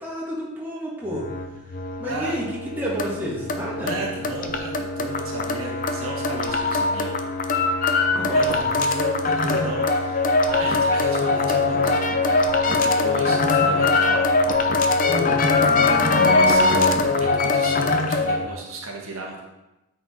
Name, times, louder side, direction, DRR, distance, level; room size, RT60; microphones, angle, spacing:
voice 1, 0.0-1.3 2.0-3.9 8.2-8.8 15.1-15.4, equal, 10° right, -6 dB, 1.7 m, -30 dB
sound 1, 1.1-18.5, left 3 dB, 40° left, 0.6 m, -22 dB
voice 2, 2.0-2.4 3.8-7.1 8.3-14.3 16.1-19.4, right 2 dB, 75° right, -2 dB, 1.7 m, -34 dB
9.1 x 4.7 x 4.3 m, 0.98 s
head